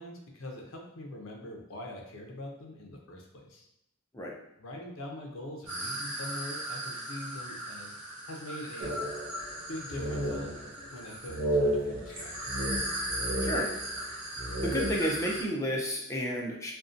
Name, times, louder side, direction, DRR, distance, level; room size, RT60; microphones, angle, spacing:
voice 1, 0.0-3.7 4.6-8.0 8.3-9.0 9.7-12.6, left 1 dB, 70° left, 1 dB, 0.5 m, -43 dB
sound 1, 5.7-15.4, right 1 dB, 85° right, 0.9 m, -38 dB
sound 2, 8.8-9.6 9.9-10.8 11.3-14.1 14.3-15.4, right 1 dB, 60° right, 0.5 m, -33 dB
voice 2, 13.4-13.7 14.6-16.7, equal, 15° left, -2 dB, 0.3 m, -31 dB
2.6 x 2.0 x 2.4 m, 0.80 s
head